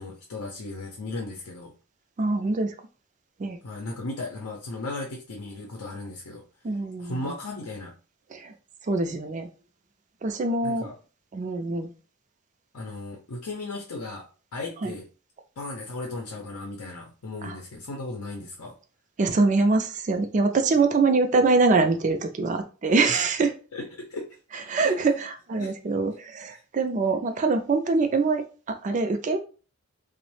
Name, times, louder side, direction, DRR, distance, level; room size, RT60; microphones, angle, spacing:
voice 1, 0.0-1.7 3.6-6.4 7.0-7.9 10.6-10.9 12.7-14.2 14.5-15.1 15.6-18.8 23.1-23.2 23.7-24.3 24.8-24.9 25.6-25.7 26.5-26.6, left 2 dB, 90° left, 0 dB, 0.6 m, -36 dB
voice 2, 2.2-2.7 3.4-3.6 6.6-7.2 8.3-8.5 8.9-9.5 10.2-10.9 11.3-11.9 14.8-14.9 17.4-17.6 19.2-23.5 24.7-29.4, right 3 dB, 35° right, 7 dB, 0.3 m, -24 dB
3.0 x 2.0 x 3.1 m, 0.37 s
head